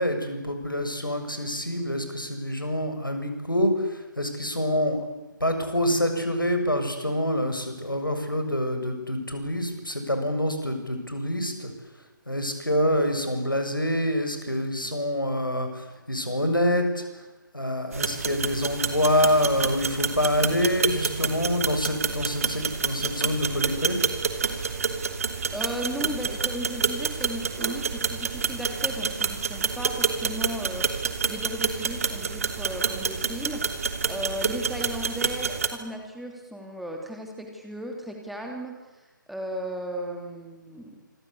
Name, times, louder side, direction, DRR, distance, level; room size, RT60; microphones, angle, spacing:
voice 1, 0.0-5.1 5.4-11.7 12.3-17.2 17.5-24.0 24.6-24.8, left 1 dB, 85° left, 6 dB, 7.3 m, -26 dB
sound 1, 17.9-35.7, right 5 dB, 45° right, 3.0 m, -28 dB
voice 2, 25.5-41.0, equal, ahead, 1 dB, 3.0 m, -36 dB
27.5 x 24.0 x 8.6 m, 1.1 s
figure-of-eight pair, 140°, 11 cm